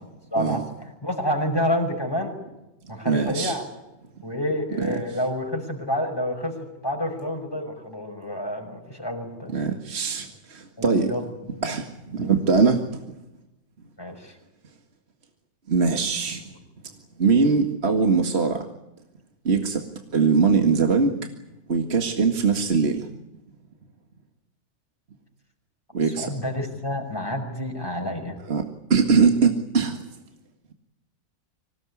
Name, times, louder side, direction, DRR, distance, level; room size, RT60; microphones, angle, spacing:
voice 1, 0.3-0.6 1.0-2.4 2.9-3.6 4.2-9.5 10.8-11.2 12.2-12.3 14.0-14.4 26.2-28.4, equal, 15° left, 3 dB, 5.9 m, -28 dB
voice 2, 3.1-3.6 4.8-5.0 9.5-11.1 11.6-13.0 15.7-16.4 17.2-18.6 19.4-19.8 20.1-21.2 21.7-23.1 25.9-26.3 28.5-28.6 28.9-30.0, right 5 dB, 45° right, 4 dB, 2.1 m, -21 dB
25.5 x 18.0 x 9.8 m, 0.94 s
omnidirectional pair, 1.5 m